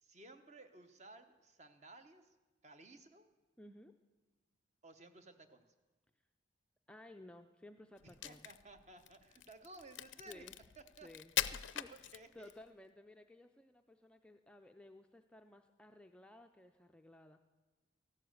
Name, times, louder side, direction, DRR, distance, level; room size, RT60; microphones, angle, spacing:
voice 1, 0.0-2.4 2.6-3.3 4.8-5.7 8.0-10.5 10.8-11.1 11.9-12.5, right 2 dB, 35° right, 8 dB, 0.9 m, -57 dB
voice 2, 3.6-3.9 6.9-8.5 10.3-10.6 11.0-12.1 12.3-17.4, left 1 dB, 5° left, 5 dB, 0.4 m, -57 dB
Crack, 8.0-12.6, left 12 dB, 70° left, 0.5 m, -42 dB
14.5 x 11.5 x 7.9 m, 1.2 s
head